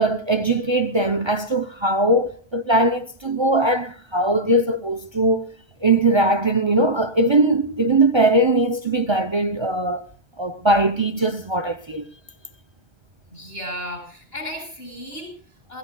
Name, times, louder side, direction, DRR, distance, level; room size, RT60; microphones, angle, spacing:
voice 1, 0.0-5.5 5.8-10.0 10.4-12.1, right 2 dB, 30° right, 0.7 m, -20 dB
voice 2, 13.3-15.8, equal, 70° left, 8.1 m, -35 dB
27.5 x 15.5 x 2.3 m
omnidirectional pair, 1.1 m